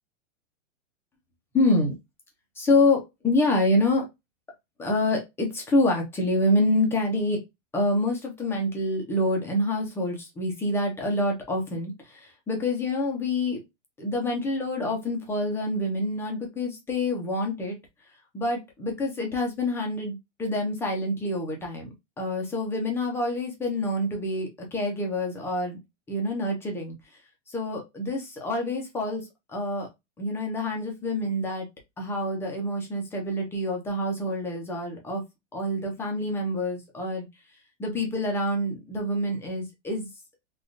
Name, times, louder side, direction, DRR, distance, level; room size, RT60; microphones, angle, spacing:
voice 1, 1.5-2.0 2.6-4.1 4.8-7.4 7.7-13.6 14.0-17.8 18.3-25.8 26.1-26.9 27.5-29.9 30.2-31.7 32.0-35.2 35.5-37.3 37.8-40.1, left 1 dB, 5° left, 1 dB, 0.4 m, -27 dB
3.5 x 2.3 x 2.5 m, 0.21 s
hypercardioid pair, 135°, 38 cm